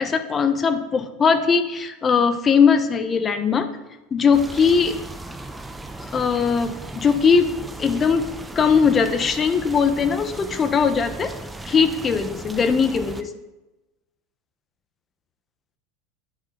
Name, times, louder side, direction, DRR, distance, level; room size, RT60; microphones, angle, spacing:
voice 1, 0.0-3.7 4.1-5.0 6.0-7.5 7.8-8.2 8.5-11.3 11.7-13.3, left 6 dB, 30° left, 9 dB, 1.1 m, -20 dB
sound 1, 4.3-13.2, right 2 dB, 10° right, 0.9 m, -36 dB
9.9 x 9.7 x 3.9 m, 1.0 s
hypercardioid pair, 85°, 0 cm